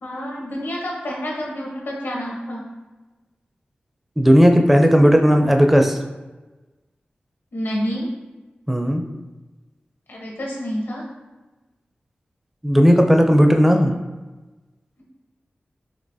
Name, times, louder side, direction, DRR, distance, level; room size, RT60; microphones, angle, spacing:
voice 1, 0.0-2.6 7.5-8.1 10.1-11.0, equal, 80° left, -2 dB, 1.1 m, -28 dB
voice 2, 4.2-6.0 8.7-9.0 12.6-13.9, equal, 5° right, 4 dB, 0.4 m, -14 dB
5.2 x 2.9 x 2.7 m, 1.2 s
wide cardioid pair, 75°, 4 cm